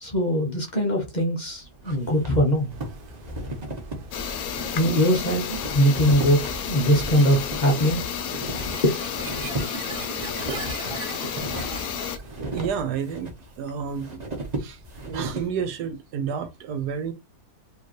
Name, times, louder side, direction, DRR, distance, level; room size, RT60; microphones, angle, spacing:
voice 1, 0.0-2.7 4.7-8.0 8.8-8.9, equal, 30° left, 1.0 m, -21 dB
sound 1, 1.5-15.5, right 1 dB, 30° right, 1.0 m, -36 dB
sound 2, 2.7-12.5, right 5 dB, 55° right, 0.6 m, -41 dB
sound 3, 4.1-12.2, left 9 dB, 70° left, 1.1 m, -32 dB
voice 2, 12.4-14.2 14.6-17.1, right 7 dB, 80° right, 1.3 m, -30 dB
4.6 x 3.0 x 3.0 m
omnidirectional pair, 1.7 m